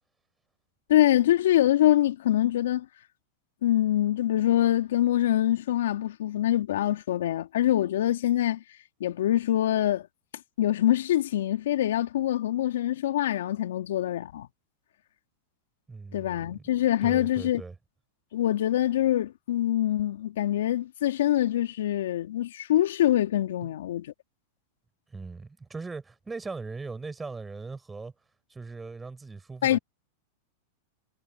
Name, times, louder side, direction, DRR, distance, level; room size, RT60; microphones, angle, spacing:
voice 1, 0.9-2.9 3.6-8.6 9.0-10.1 10.6-14.5 16.1-17.6 18.3-24.1 29.6-29.8, left 12 dB, 75° left, 2.8 m, -24 dB
voice 2, 15.9-16.6 17.0-17.7 23.6-23.7 25.1-28.1 28.5-29.8, right 4 dB, 15° right, 5.7 m, -39 dB
hypercardioid pair, 105°, 0 cm